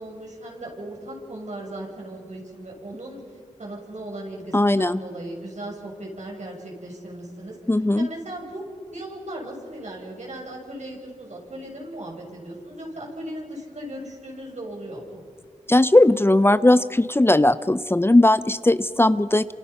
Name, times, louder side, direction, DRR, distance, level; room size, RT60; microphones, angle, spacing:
voice 1, 0.0-3.2 3.6-7.6 7.9-8.7 8.9-15.2, right 1 dB, 65° right, -1 dB, 6.8 m, -37 dB
voice 2, 4.5-5.0 7.7-8.1 15.7-19.5, left 1 dB, 20° left, 14 dB, 0.6 m, -18 dB
28.5 x 27.0 x 5.8 m, 2.1 s
cardioid pair, 50°, 13 cm